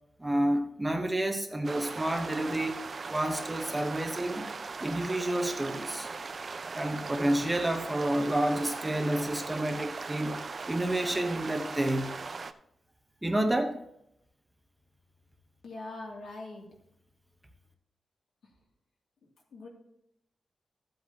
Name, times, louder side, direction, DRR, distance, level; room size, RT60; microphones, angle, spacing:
voice 1, 0.2-4.4 4.8-6.1 6.7-10.4 10.7-12.1 13.2-13.8, right 1 dB, 10° right, 5 dB, 0.9 m, -29 dB
sound 1, 1.6-12.5, right 4 dB, 40° right, 0.5 m, -39 dB
voice 2, 15.6-16.7 19.5-19.7, left 2 dB, 80° left, -1 dB, 2.5 m, -42 dB
15.0 x 7.9 x 2.8 m, 0.78 s
wide cardioid pair, 160°, 0 cm